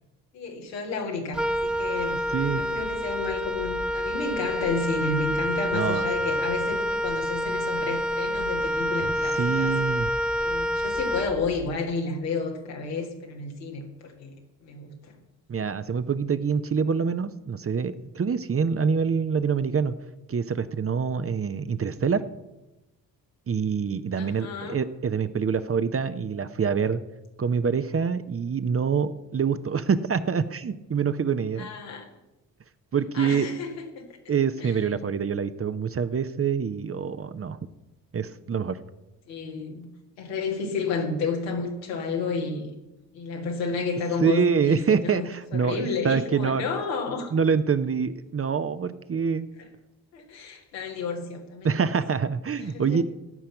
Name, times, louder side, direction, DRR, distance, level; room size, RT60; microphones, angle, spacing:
voice 1, 0.3-9.8 10.4-14.3 14.6-15.2 24.2-24.8 31.6-32.0 33.1-34.1 34.6-34.7 39.3-39.9 40.2-42.7 43.1-47.3 50.1-51.9 52.6-53.0, left 4 dB, 80° left, 1 dB, 1.9 m, -31 dB
Wind instrument woodwind instrument, 1.3-11.8, equal, ahead, 0.4 m, -28 dB
voice 2, 2.3-2.6 5.7-6.1 9.3-10.1 15.5-19.9 20.3-22.2 23.5-27.0 27.4-31.7 32.9-33.5 34.3-37.6 38.1-38.8 44.2-46.6 47.3-49.5 51.6-53.0, right 6 dB, 30° right, 12 dB, 0.8 m, -25 dB
15.5 x 5.7 x 7.9 m, 0.99 s
hypercardioid pair, 45°, 49 cm